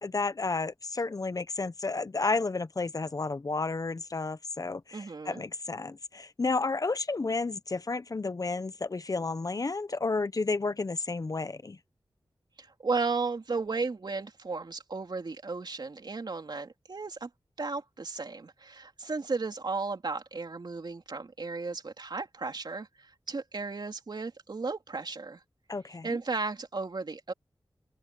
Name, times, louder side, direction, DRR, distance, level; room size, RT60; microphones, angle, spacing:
voice 1, 0.0-11.8 25.7-26.2, left 3 dB, 45° left, 1.0 m, -31 dB
voice 2, 4.9-5.4 12.6-17.3 17.6-25.4 26.0-27.3, right 4 dB, 60° right, 3.5 m, -34 dB
wide cardioid pair, 75°, 8 cm